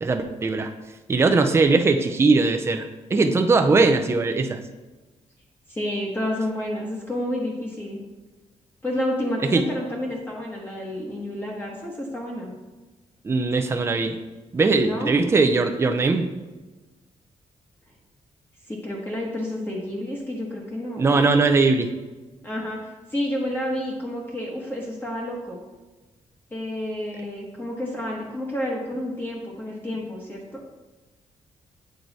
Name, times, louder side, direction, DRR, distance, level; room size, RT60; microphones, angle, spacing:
voice 1, 0.0-0.7 1.1-4.6 9.5-9.6 13.2-14.2 14.5-16.3 21.0-21.9, right 3 dB, 20° right, 6 dB, 0.4 m, -20 dB
voice 2, 5.7-8.0 8.8-12.5 14.8-15.2 18.7-21.1 22.4-25.6 26.5-30.6, left 1 dB, 15° left, -2 dB, 1.1 m, -30 dB
7.7 x 4.6 x 4.0 m, 1.2 s
wide cardioid pair, 170°, 13 cm